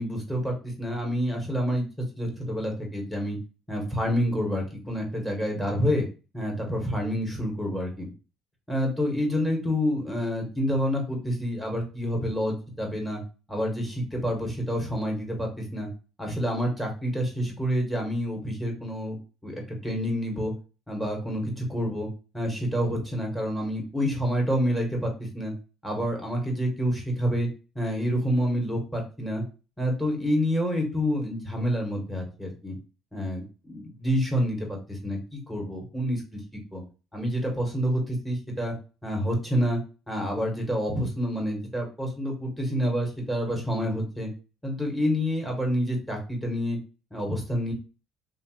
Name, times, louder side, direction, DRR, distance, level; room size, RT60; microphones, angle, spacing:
voice 1, 0.0-3.4 3.7-6.1 6.3-8.1 8.7-13.2 13.5-15.9 16.2-19.2 19.4-20.5 20.9-22.1 22.3-25.5 25.8-27.5 27.7-29.4 29.8-32.8 33.1-36.8 37.1-38.7 39.0-39.8 40.1-44.3 44.6-46.8 47.1-47.7, equal, 5° left, 0 dB, 1.6 m, -28 dB
2.8 x 2.5 x 3.0 m, 0.33 s
supercardioid pair, 75°, 0 cm